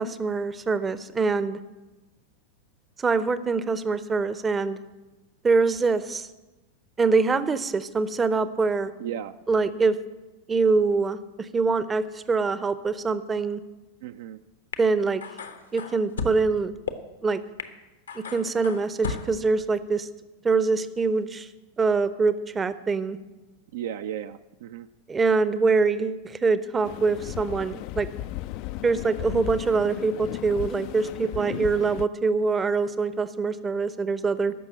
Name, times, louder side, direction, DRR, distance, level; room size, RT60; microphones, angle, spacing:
voice 1, 0.0-1.6 3.0-4.8 5.4-6.3 7.0-8.9 9.5-10.0 10.5-13.6 14.8-15.2 15.7-16.7 17.2-17.4 18.2-20.1 20.4-21.5 21.8-23.2 25.1-28.1 28.8-34.5, right 4 dB, 15° right, 14 dB, 0.6 m, -24 dB
voice 2, 9.0-9.8 14.0-14.4 23.7-24.9 31.2-31.6, right 10 dB, 55° right, 10 dB, 0.4 m, -36 dB
sound 1, 14.7-14.8 15.2-16.3 16.9-17.0 17.6-17.7 18.1-19.4, left 5 dB, 70° left, 0.9 m, -34 dB
sound 2, 26.8-32.1, left 15 dB, 45° left, 0.3 m, -36 dB
14.0 x 6.0 x 8.9 m, 1.1 s
figure-of-eight pair, 90°, 0 cm